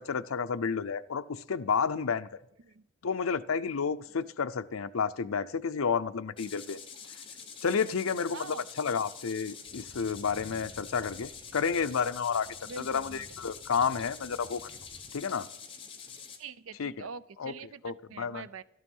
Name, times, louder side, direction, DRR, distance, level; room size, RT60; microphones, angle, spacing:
voice 1, 0.0-2.3 3.0-6.8 7.6-12.5 12.8-14.7 15.1-15.5 16.8-16.9 17.4-17.5 17.8-18.5, left 6 dB, 90° left, 14 dB, 0.6 m, -31 dB
sound 1, 6.4-16.4, left 6 dB, 25° left, 1.3 m, -46 dB
voice 2, 8.3-8.7 12.7-13.5 16.4-18.6, right 5 dB, 85° right, 16 dB, 0.6 m, -45 dB
sound 2, 9.7-15.1, equal, 10° right, 1.8 m, -55 dB
13.0 x 12.5 x 5.5 m, 0.81 s
head